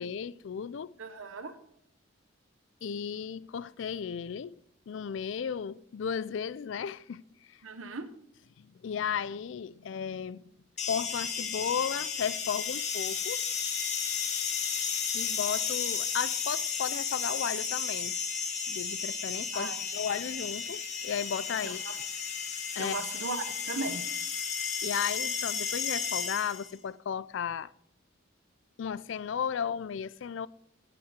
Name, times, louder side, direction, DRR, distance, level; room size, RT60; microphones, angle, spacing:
voice 1, 0.0-0.9 2.8-4.6 4.9-7.2 7.5-7.6 8.6-10.4 10.9-13.4 15.1-18.1 18.7-21.8 22.7-23.0 24.8-27.7 28.8-30.5, left 7 dB, 65° left, 0.4 m, -34 dB
voice 2, 1.0-1.5 7.6-8.1 19.5-19.8 21.6-21.9 22.8-24.0, right 3 dB, 85° right, 0.9 m, -37 dB
sound 1, 10.8-26.7, left 6 dB, 35° left, 1.4 m, -33 dB
16.5 x 5.8 x 5.1 m
head